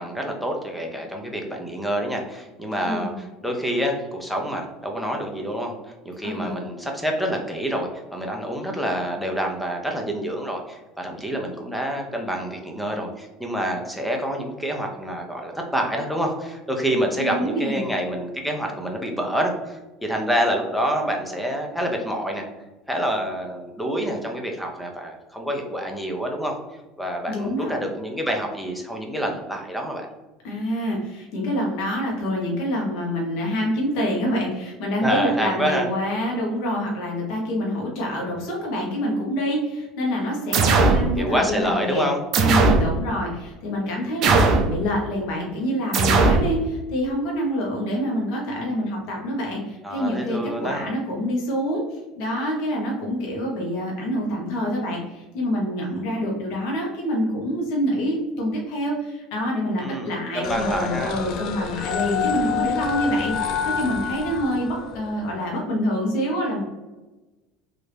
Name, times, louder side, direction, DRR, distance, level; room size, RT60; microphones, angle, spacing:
voice 1, 0.0-5.7 6.0-22.5 22.9-26.5 27.0-30.1 35.0-35.9 40.7-42.2 49.8-50.8 59.8-61.1, equal, ahead, 2 dB, 0.5 m, -27 dB
voice 2, 2.8-3.1 6.2-6.7 17.2-17.9 27.3-27.7 30.4-42.0 42.3-66.6, equal, 70° left, -2 dB, 1.0 m, -26 dB
sound 1, 40.5-41.1 42.3-42.9 44.2-44.7 45.9-46.5, right 3 dB, 45° right, 0.5 m, -17 dB
sound 2, 60.4-65.3, left 7 dB, 50° left, 0.3 m, -28 dB
3.3 x 2.6 x 3.3 m, 1.1 s
cardioid pair, 145°, 0 cm